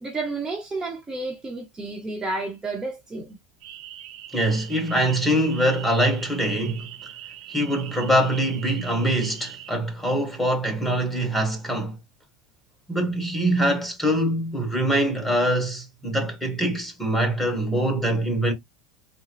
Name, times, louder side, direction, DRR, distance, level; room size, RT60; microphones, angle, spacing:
voice 1, 0.0-3.4, right 3 dB, 15° right, 0.9 m, -31 dB
sound 1, 3.6-9.7, right 12 dB, 75° right, 0.7 m, -41 dB
voice 2, 4.3-7.1 7.5-12.0 12.9-18.5, right 1 dB, 5° left, 1.4 m, -24 dB
3.8 x 2.1 x 3.1 m
supercardioid pair, 125°, 4 cm